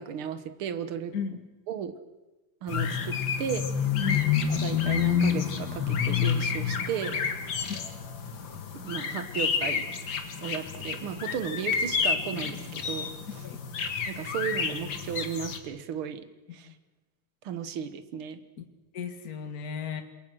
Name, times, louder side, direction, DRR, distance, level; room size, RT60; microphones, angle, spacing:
voice 1, 0.0-1.1 1.7-1.9 2.6-3.6 4.6-7.2 8.7-13.1 14.1-16.2 16.5-16.7 17.4-18.4, right 8 dB, 75° right, 11 dB, 2.2 m, -35 dB
sound 1, 2.7-15.6, left 7 dB, 60° left, 2.5 m, -29 dB
voice 2, 18.9-20.0, left 6 dB, 45° left, 7 dB, 2.1 m, -35 dB
27.5 x 22.0 x 6.3 m, 1.1 s
omnidirectional pair, 2.4 m